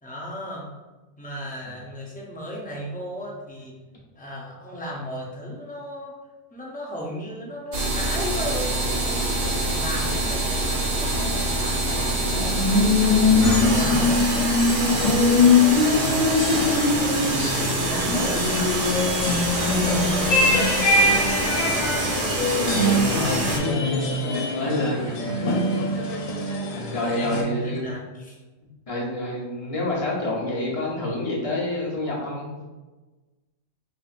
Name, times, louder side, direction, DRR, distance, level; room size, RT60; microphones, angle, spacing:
voice 1, 0.0-0.7 1.2-3.8 4.2-6.1 6.5-14.2 14.9-15.3 15.6-20.8 21.5-22.0 22.8-23.4 24.6-25.6 26.7-28.4, equal, 15° left, -4 dB, 0.3 m, -35 dB
sound 1, 7.7-23.6, right 2 dB, 55° right, 0.7 m, -25 dB
sound 2, 11.2-27.4, left 3 dB, 85° left, 1.0 m, -22 dB
voice 2, 15.9-16.3 22.5-25.8 26.9-27.8 28.9-32.7, left 1 dB, 30° left, -5 dB, 0.8 m, -28 dB
4.4 x 2.6 x 2.5 m, 1.2 s
omnidirectional pair, 1.4 m